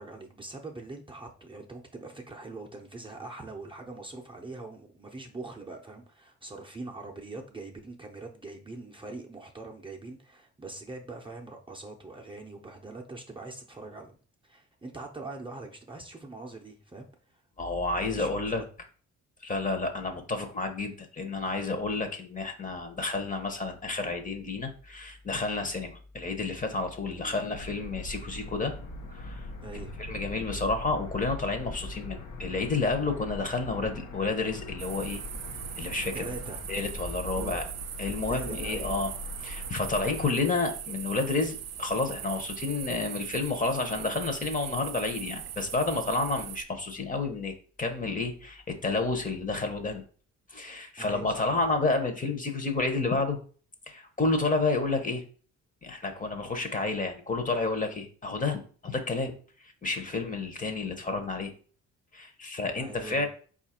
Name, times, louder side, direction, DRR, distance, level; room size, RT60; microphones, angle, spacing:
voice 1, 0.0-14.2 14.4-17.4 17.9-18.6 27.1-27.4 29.6-29.9 36.1-36.7 37.4-37.6 38.0-38.9 51.0-51.7 62.7-63.3, right 3 dB, 15° right, 0 dB, 0.6 m, -43 dB
voice 2, 17.6-18.6 19.4-28.7 29.1-29.5 30.0-35.2 35.8-36.3 36.7-37.6 38.0-39.1 39.4-50.0 50.5-53.4 53.9-55.2 55.8-59.3 59.8-61.5 62.1-63.3, left 3 dB, 25° left, 6 dB, 0.8 m, -30 dB
sound 1, 27.5-40.3, left 1 dB, 75° left, 0.8 m, -42 dB
sound 2, 34.8-46.6, right 10 dB, 55° right, 0.5 m, -40 dB
4.4 x 2.4 x 4.2 m, 0.42 s
cardioid pair, 90°, 30 cm